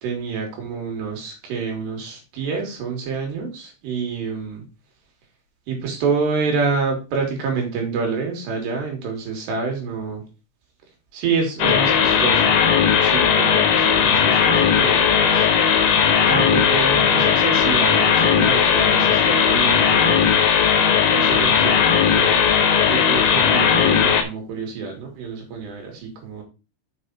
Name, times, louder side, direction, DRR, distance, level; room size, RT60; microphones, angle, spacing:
voice 1, 0.0-4.6 5.7-10.2 11.1-12.6 13.0-15.5 16.3-20.3 21.1-21.8 22.1-22.5 22.8-26.4, right 5 dB, 80° right, 1 dB, 4.5 m, -27 dB
sound 1, 11.6-24.2, left 7 dB, 70° left, 2.6 m, -17 dB
7.4 x 5.6 x 4.2 m, 0.31 s
omnidirectional pair, 4.8 m